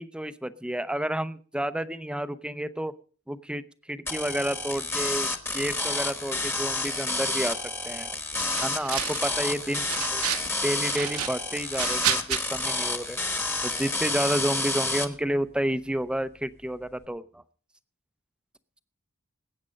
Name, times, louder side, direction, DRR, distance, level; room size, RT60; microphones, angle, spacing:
voice 1, 0.0-2.9 3.3-3.6 3.9-5.3 5.5-7.6 7.8-8.1 8.6-10.2 10.6-13.2 13.6-17.4, right 1 dB, 5° right, 13 dB, 0.6 m, -30 dB
sound 1, 4.1-15.1, left 2 dB, 10° left, 1.1 m, -29 dB
sound 2, 8.3-9.4 9.7-10.5 10.8-12.4, right 9 dB, 80° right, 1.4 m, -31 dB
19.5 x 8.7 x 5.1 m, 0.42 s
head